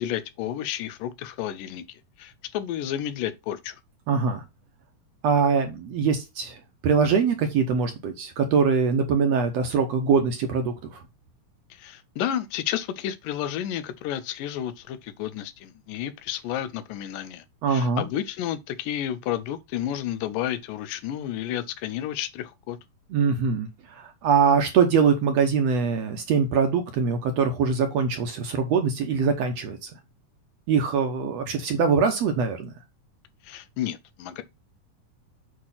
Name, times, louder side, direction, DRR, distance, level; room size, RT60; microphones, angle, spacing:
voice 1, 0.0-3.8 11.7-22.8 33.4-34.4, left 11 dB, 90° left, 2.4 m, -31 dB
voice 2, 4.1-4.4 5.2-6.6 6.8-11.0 17.6-18.1 23.1-23.7 24.0-29.8 30.7-32.7, right 5 dB, 65° right, 1.8 m, -23 dB
8.5 x 3.1 x 5.6 m
omnidirectional pair, 3.8 m